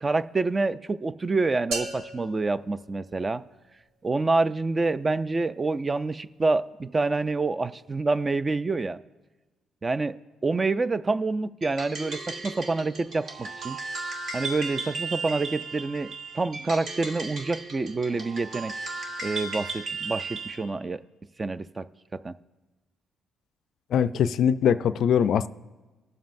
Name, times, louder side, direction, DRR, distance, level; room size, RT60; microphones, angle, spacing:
voice 1, 0.0-3.4 4.0-9.0 9.8-10.2 10.4-13.8 14.3-18.7 19.2-21.0 21.4-21.9 22.1-22.3, right 3 dB, 25° right, 14 dB, 0.3 m, -27 dB
sound 1, 1.7-3.7, right 2 dB, 80° right, 1.5 m, -37 dB
sound 2, 11.6-20.6, right 3 dB, 60° right, 1.3 m, -36 dB
voice 2, 23.9-25.5, left 8 dB, 70° left, 13 dB, 0.3 m, -22 dB
21.5 x 7.4 x 2.6 m, 1.2 s
cardioid pair, 90°, 0 cm